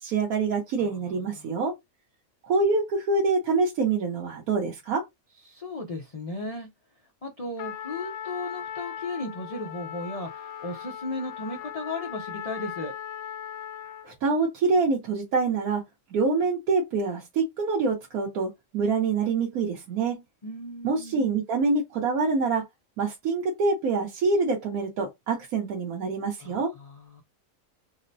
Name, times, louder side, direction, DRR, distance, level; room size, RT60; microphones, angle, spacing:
voice 1, 0.0-1.7 2.4-5.0 14.0-15.8 16.1-20.2 20.8-22.6 23.0-26.7, right 4 dB, 85° right, 1.2 m, -26 dB
voice 2, 0.8-1.5 5.4-6.7 7.2-12.9 20.4-21.3 26.4-27.2, left 2 dB, 50° left, 0.4 m, -36 dB
Trumpet, 7.6-14.1, left 9 dB, 90° left, 1.0 m, -38 dB
3.7 x 2.1 x 2.6 m
omnidirectional pair, 1.5 m